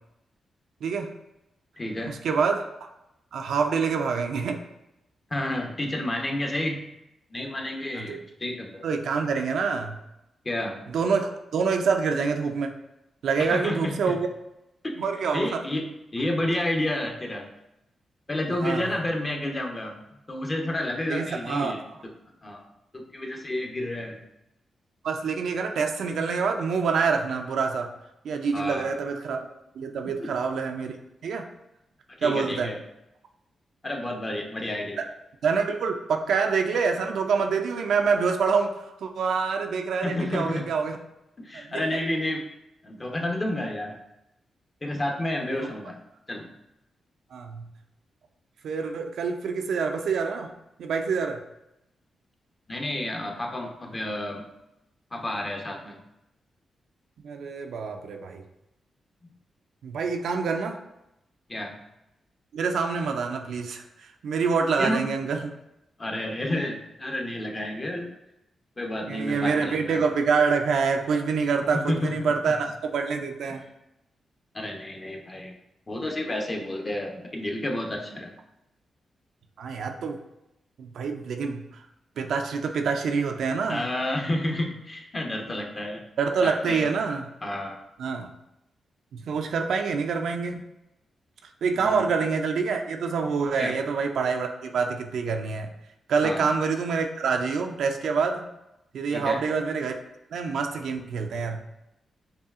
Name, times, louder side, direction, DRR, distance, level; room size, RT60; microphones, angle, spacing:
voice 1, 0.8-1.1 2.1-2.6 3.3-4.6 7.9-8.2 8.8-10.0 10.9-12.7 13.2-14.3 15.0-15.6 18.6-18.9 21.1-22.0 25.0-27.9 28.2-29.4 29.8-31.0 31.2-31.5 32.2-32.7 35.4-41.0 41.5-42.0 45.6-45.7 47.3-47.7 48.6-50.5 50.8-51.4 57.2-58.4 59.8-60.8 62.5-65.4 69.1-73.6 79.6-80.2 80.8-81.8 82.2-83.9 86.2-87.3 88.0-88.3 89.1-90.6 91.6-95.7 96.1-98.5 98.9-99.9 100.3-101.8, right 5 dB, 75° right, 4 dB, 0.4 m, -26 dB
voice 2, 1.8-2.1 5.3-6.8 7.3-8.9 10.4-10.8 13.4-14.2 15.3-15.9 16.1-17.5 18.3-22.1 22.4-22.6 22.9-24.2 28.5-28.9 30.2-30.3 32.2-32.8 33.8-35.0 40.0-40.7 41.4-42.5 42.8-44.0 44.8-46.0 46.3-46.5 52.7-54.5 55.1-56.0 61.5-61.7 64.8-65.1 66.0-68.1 68.8-70.0 71.6-72.3 74.5-75.5 75.9-78.3 83.7-86.0 86.4-86.9 87.4-87.8 91.8-92.1 93.6-93.7 96.2-96.5 99.1-99.4, left 1 dB, 35° left, 2 dB, 0.8 m, -30 dB
5.4 x 2.4 x 2.4 m, 0.88 s
supercardioid pair, 45°, 0 cm